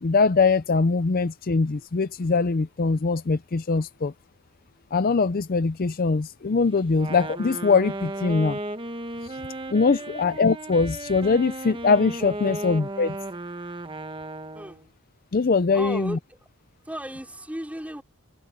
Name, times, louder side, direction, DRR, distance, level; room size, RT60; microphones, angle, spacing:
voice 1, 0.0-4.1 4.9-8.6 9.2-9.4 9.7-13.2 15.3-16.2, left 4 dB, 40° left, 0.5 m, -22 dB
Wind instrument woodwind instrument, 6.9-14.9, right 2 dB, 25° right, 1.1 m, -35 dB
voice 2, 14.5-14.9 15.7-16.4 16.8-18.0, right 1 dB, 5° right, 4.9 m, -35 dB
open air
head